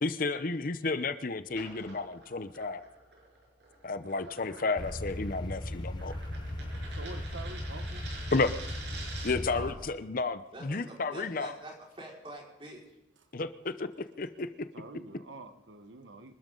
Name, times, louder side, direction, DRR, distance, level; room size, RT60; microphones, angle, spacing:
voice 1, 0.0-2.8 3.8-6.1 8.3-8.5 9.2-11.5 13.3-13.9 14.2-14.5, left 3 dB, 50° left, 12 dB, 0.7 m, -32 dB
sound 1, 1.5-9.5, right 3 dB, 65° right, 6.2 m, -48 dB
sound 2, 4.8-9.8, left 1 dB, 25° left, 1.4 m, -37 dB
voice 2, 6.8-8.1 13.2-13.3 14.7-16.3, right 3 dB, 85° right, 8 dB, 1.2 m, -47 dB
voice 3, 9.4-9.9 10.5-13.0, right 1 dB, 30° right, -2 dB, 5.1 m, -46 dB
26.0 x 12.5 x 3.9 m, 0.95 s
head